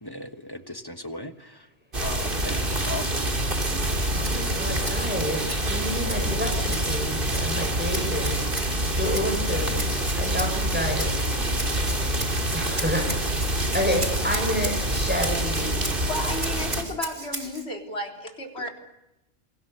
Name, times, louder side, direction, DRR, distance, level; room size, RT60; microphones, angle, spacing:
voice 1, 0.0-1.7 2.0-3.2, left 2 dB, 20° left, 9 dB, 1.4 m, -37 dB
sound 1, 1.9-16.8, right 1 dB, 45° right, 3.4 m, -26 dB
sound 2, 2.7-2.8 3.4-3.5 4.0-4.1 4.5-8.5 8.8-9.1 9.3-9.5 9.8-9.9 10.2-10.4 10.9-11.1 11.8-11.9 13.0-15.3, right 2 dB, 90° right, 6.9 m, -48 dB
Rattle (instrument), 3.8-17.6, right 1 dB, 25° right, 3.1 m, -38 dB
voice 2, 4.1-11.1 12.5-15.7, equal, 10° right, 2 dB, 6.5 m, -30 dB
voice 3, 16.1-18.7, left 1 dB, 60° left, 2 dB, 4.3 m, -33 dB
28.5 x 24.0 x 6.9 m, 0.92 s
omnidirectional pair, 1.2 m